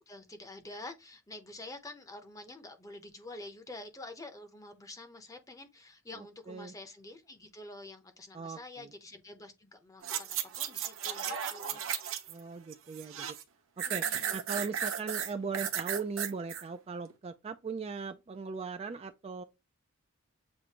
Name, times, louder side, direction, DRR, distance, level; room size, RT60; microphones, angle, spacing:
voice 1, 0.0-12.0 13.9-14.4, left 2 dB, 15° left, 0.7 m, -48 dB
voice 2, 6.2-6.7 8.3-8.9 11.7-11.8 12.3-13.4 13.8-14.0 14.3-19.4, right 5 dB, 30° right, 0.3 m, -39 dB
sound 1, 10.0-12.4 12.7-13.4 13.8-16.6 17.1-17.2, right 8 dB, 65° right, 0.8 m, -35 dB
7.4 x 2.6 x 2.8 m
head